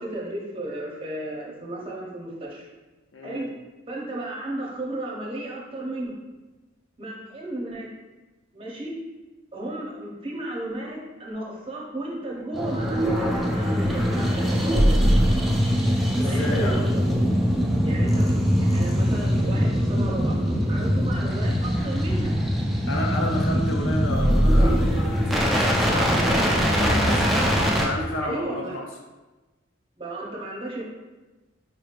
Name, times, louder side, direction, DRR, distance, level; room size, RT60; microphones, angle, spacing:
voice 1, 0.0-2.7 3.2-3.5 3.9-6.1 7.0-7.9 8.5-9.0 9.5-14.6 16.2-17.2 17.8-18.3 18.6-20.4 20.7-22.3 28.2-28.8 30.0-31.0, right 1 dB, 30° right, -3 dB, 0.7 m, -34 dB
voice 2, 3.1-3.5 16.2-16.8 22.9-27.3 27.8-28.9, left 2 dB, 80° left, 0 dB, 0.6 m, -31 dB
sound 1, 12.5-27.9, equal, ahead, 0.4 m, -22 dB
4.8 x 3.1 x 2.4 m, 1.2 s
head